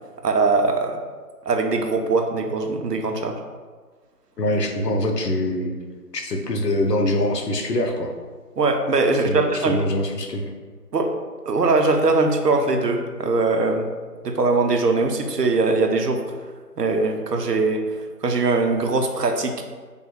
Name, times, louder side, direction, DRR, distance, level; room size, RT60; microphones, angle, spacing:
voice 1, 0.2-1.0 1.5-3.3 8.6-9.8 10.9-11.1 11.5-13.9 14.2-16.2 16.8-17.8 18.2-19.6, right 3 dB, 80° right, 4 dB, 0.6 m, -21 dB
voice 2, 4.4-5.7 6.1-8.1 9.2-10.5, left 1 dB, 85° left, 3 dB, 0.7 m, -24 dB
3.3 x 2.2 x 4.3 m, 1.5 s
figure-of-eight pair, 170°, 47 cm